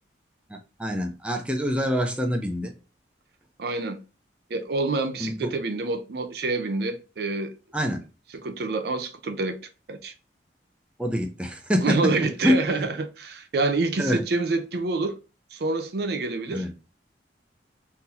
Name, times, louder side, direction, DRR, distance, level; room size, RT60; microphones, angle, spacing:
voice 1, 0.5-2.7 5.2-5.5 7.7-8.0 11.0-12.1 12.4-12.9 14.0-14.2 16.5-16.7, equal, 5° right, 0.5 m, -26 dB
voice 2, 3.6-4.0 4.5-7.5 8.4-9.6 9.9-10.1 11.8-15.2 15.5-16.7, right 3 dB, 60° right, 0.5 m, -27 dB
3.8 x 2.7 x 2.8 m
head